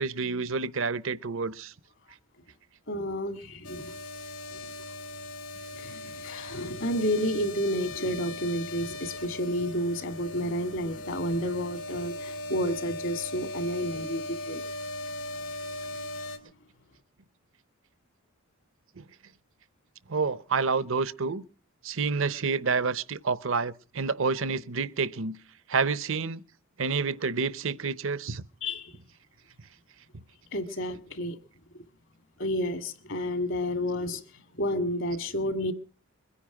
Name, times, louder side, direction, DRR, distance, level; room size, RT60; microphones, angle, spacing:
voice 1, 0.0-1.7 19.0-19.1 20.1-21.4 21.8-25.4 25.7-26.4 26.8-28.4, right 4 dB, 65° right, 0.8 m, -28 dB
voice 2, 2.9-3.9 4.5-4.7 5.7-14.6 28.6-28.9 30.5-31.4 32.4-34.2 34.5-35.7, equal, 60° left, 2.0 m, -30 dB
sound 1, 3.6-16.4, left 2 dB, 85° left, 3.2 m, -39 dB
22.0 x 10.0 x 5.9 m
head